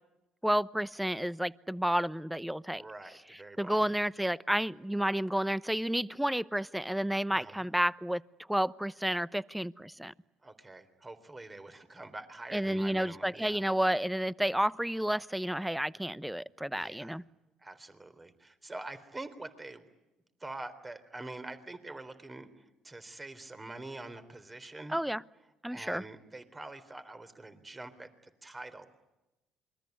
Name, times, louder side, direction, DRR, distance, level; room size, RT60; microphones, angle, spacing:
voice 1, 0.4-2.8 3.6-8.2 8.5-10.1 12.5-17.2 24.9-25.2 25.6-26.0, equal, 5° right, 19 dB, 0.9 m, -31 dB
voice 2, 2.7-3.9 7.3-7.6 10.4-13.6 16.7-17.2 17.6-19.9 20.4-25.0 25.7-28.1 28.4-28.9, right 2 dB, 20° right, 12 dB, 3.6 m, -45 dB
28.0 x 22.5 x 9.4 m, 1.0 s
hypercardioid pair, 60°, 0 cm